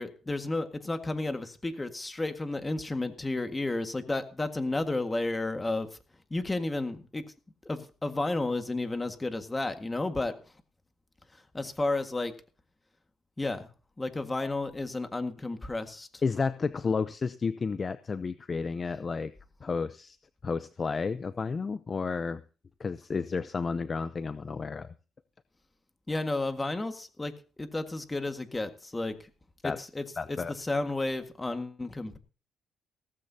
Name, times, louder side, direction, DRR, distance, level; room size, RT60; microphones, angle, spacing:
voice 1, 0.0-5.9 6.3-7.2 7.6-10.4 11.5-12.4 13.4-13.7 14.0-16.1 26.1-29.2 29.6-32.2, left 2 dB, 20° left, 7 dB, 1.7 m, -32 dB
voice 2, 16.2-19.3 19.6-20.2 20.4-22.4 22.8-24.9 29.6-29.8 30.2-30.5, left 4 dB, 35° left, 13 dB, 0.6 m, -31 dB
17.0 x 14.5 x 2.8 m, 0.36 s
cardioid pair, 90°, 0 cm